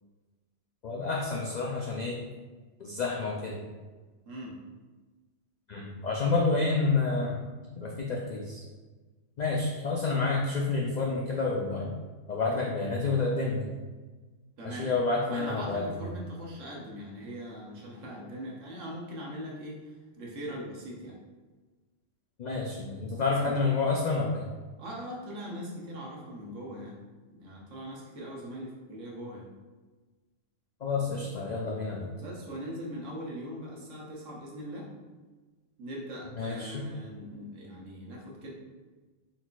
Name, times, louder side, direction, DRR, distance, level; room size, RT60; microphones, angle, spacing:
voice 1, 0.8-2.3 2.8-3.6 5.7-7.4 7.7-8.6 9.4-11.9 12.3-13.7 14.6-16.1 22.4-24.4 30.8-32.1 36.4-36.8, left 3 dB, 75° left, -2 dB, 0.4 m, -29 dB
voice 2, 4.3-4.6 14.6-14.9 15.3-21.2 23.1-23.6 24.8-27.0 27.3-29.5 32.2-34.9 35.8-38.5, equal, 75° right, -3 dB, 1.3 m, -41 dB
4.1 x 4.0 x 2.3 m, 1.3 s
omnidirectional pair, 1.3 m